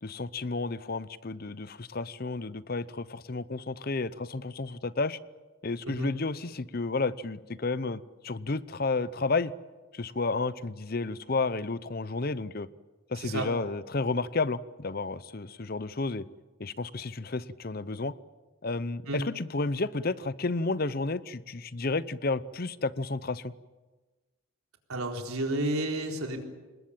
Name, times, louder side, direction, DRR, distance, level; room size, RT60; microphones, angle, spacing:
voice 1, 0.0-5.2 5.6-9.5 9.9-12.7 13.1-16.3 16.6-18.1 18.6-23.5, left 3 dB, 45° left, 17 dB, 0.7 m, -31 dB
voice 2, 13.1-13.5 19.1-19.2 24.9-26.4, right 1 dB, 90° right, 3 dB, 4.1 m, -31 dB
26.5 x 20.5 x 8.8 m, 1.3 s
head